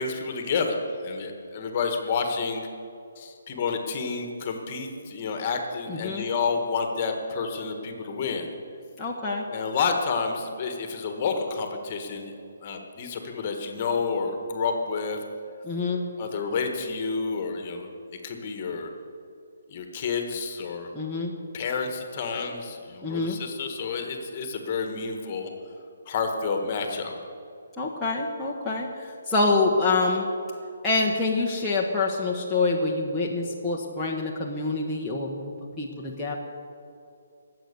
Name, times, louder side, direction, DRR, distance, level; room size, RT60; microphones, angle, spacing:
voice 1, 0.0-2.7 3.2-8.5 9.5-12.3 12.6-15.2 16.2-17.9 18.2-18.9 19.7-20.9 21.5-25.5 26.1-27.2, left 5 dB, 30° left, 5 dB, 1.6 m, -29 dB
voice 2, 5.9-6.3 9.0-9.4 15.6-16.1 20.9-21.4 23.0-23.4 27.8-30.3 30.8-36.4, left 3 dB, 5° left, -7 dB, 1.0 m, -26 dB
19.0 x 7.9 x 6.9 m, 2.5 s
hypercardioid pair, 170°, 0 cm